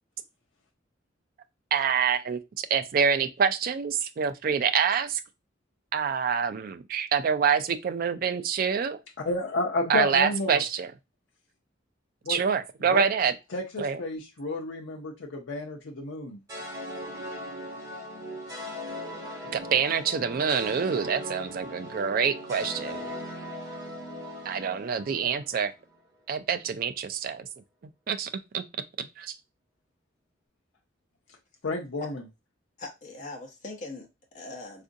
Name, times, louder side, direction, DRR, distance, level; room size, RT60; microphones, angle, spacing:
voice 1, 1.7-5.2 5.9-9.0 9.9-10.9 12.3-13.3 13.8-14.0 19.5-23.0 24.5-25.7 26.3-27.5 28.1-28.6 29.0-29.4, right 6 dB, 50° right, 0.3 m, -26 dB
voice 2, 9.2-10.6 12.3-12.4 12.9-13.0 13.5-16.4 31.6-32.2, left 2 dB, 70° left, 0.6 m, -31 dB
sound 1, 16.5-25.8, equal, 20° right, 1.9 m, -39 dB
voice 3, 32.8-34.8, left 2 dB, 40° left, 0.8 m, -41 dB
3.7 x 2.5 x 2.5 m
head